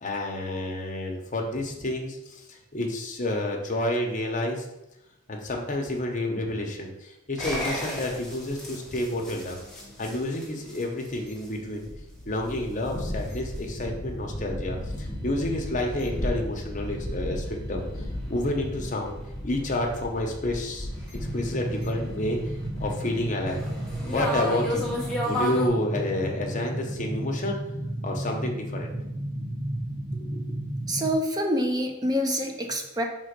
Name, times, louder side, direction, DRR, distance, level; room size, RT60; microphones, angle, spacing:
voice 1, 0.0-4.7 5.3-9.6 10.0-11.9 12.3-19.1 19.4-22.4 22.8-23.6 24.0-24.9 25.2-27.6 28.0-28.9 30.2-30.4, left 1 dB, 35° left, 1 dB, 1.0 m, -30 dB
sound 1, 7.4-25.7, equal, 5° left, 1.1 m, -34 dB
sound 2, 21.1-31.1, right 1 dB, 50° right, 1.9 m, -33 dB
voice 2, 30.9-33.0, equal, 20° right, 3 dB, 0.6 m, -26 dB
5.1 x 3.7 x 5.2 m, 0.90 s
head